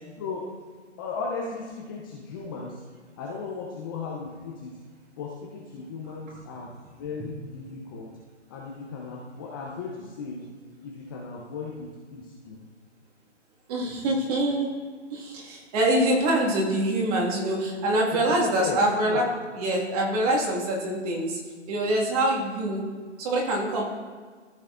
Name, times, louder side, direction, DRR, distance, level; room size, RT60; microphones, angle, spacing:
voice 1, 1.0-2.8 3.2-4.7 5.2-6.7 7.0-8.1 8.5-10.4 10.8-12.6 18.1-18.8 19.1-19.2, left 5 dB, 20° left, -2 dB, 0.5 m, -36 dB
voice 2, 6.0-6.4 13.7-14.8 15.1-21.4 21.7-22.9 23.2-23.9, right 1 dB, 30° right, -2 dB, 1.8 m, -25 dB
14.0 x 6.3 x 2.5 m, 1.5 s
hypercardioid pair, 140°, 36 cm